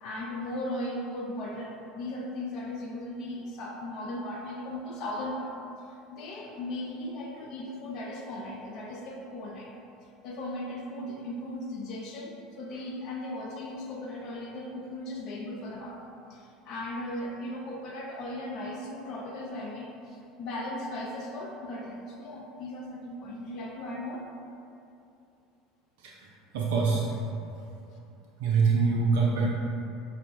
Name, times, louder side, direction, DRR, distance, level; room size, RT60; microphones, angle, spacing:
voice 1, 0.0-5.6 5.9-9.7 10.2-16.0 16.3-24.2, left 1 dB, 50° left, -1 dB, 0.4 m, -37 dB
voice 2, 26.5-27.1 27.5-27.6 28.4-29.5, right 4 dB, 65° right, -2 dB, 0.3 m, -24 dB
5.3 x 2.1 x 2.5 m, 2.6 s
figure-of-eight pair, 70°, 0 cm